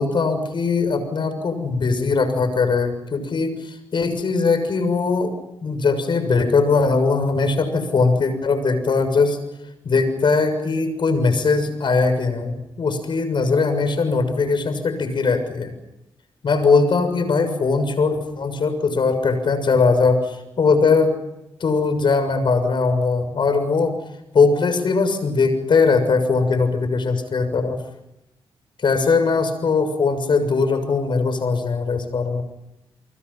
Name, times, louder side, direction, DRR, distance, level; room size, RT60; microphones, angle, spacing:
voice 1, 0.0-3.5 3.9-5.4 5.6-9.4 9.8-15.7 16.4-21.1 21.6-23.9 24.3-27.8 28.8-32.4, left 4 dB, 60° left, 9 dB, 6.7 m, -20 dB
29.0 x 25.5 x 5.7 m, 0.91 s
cardioid pair, 70°, 9 cm